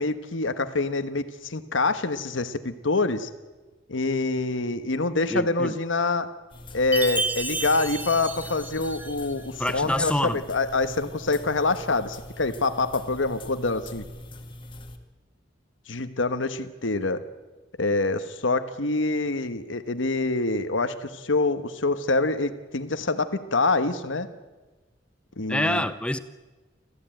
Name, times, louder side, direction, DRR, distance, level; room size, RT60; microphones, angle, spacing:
voice 1, 0.0-3.3 3.9-6.3 6.7-14.0 15.9-17.2 17.8-24.3 25.4-25.8, left 3 dB, 85° left, 11 dB, 1.3 m, -26 dB
voice 2, 5.3-5.7 9.6-10.4 25.5-26.2, left 1 dB, 5° left, 12 dB, 0.7 m, -26 dB
sound 1, 6.5-15.0, left 1 dB, 25° left, 1.9 m, -42 dB
Chime, 6.9-9.4, right 2 dB, 10° right, 1.5 m, -31 dB
27.5 x 14.5 x 9.1 m, 1.2 s
head